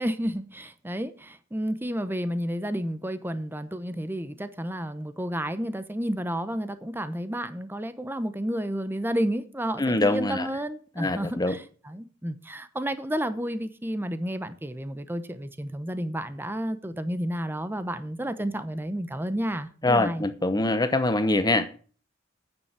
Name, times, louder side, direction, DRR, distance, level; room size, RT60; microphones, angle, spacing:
voice 1, 0.0-20.2, equal, 10° right, 0.9 m, -31 dB
voice 2, 9.8-10.5 11.0-11.6 19.8-21.7, left 2 dB, 20° left, 0.9 m, -24 dB
9.4 x 7.0 x 8.1 m
head